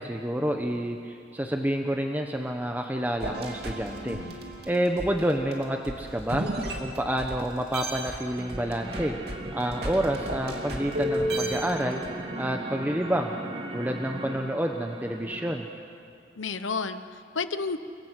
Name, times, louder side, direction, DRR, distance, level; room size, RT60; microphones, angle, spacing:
voice 1, 0.0-4.2 4.7-6.5 6.8-9.2 9.5-12.0 12.4-13.3 13.7-15.7, right 1 dB, 10° right, 3 dB, 1.0 m, -28 dB
sound 1, 3.2-7.4 7.7-12.1, right 1 dB, 55° right, 2.8 m, -33 dB
sound 2, 8.4-15.6, right 1 dB, 30° right, 1.6 m, -38 dB
voice 2, 16.4-17.8, left 4 dB, 90° left, 11 dB, 1.1 m, -32 dB
29.5 x 18.0 x 8.2 m, 2.4 s
head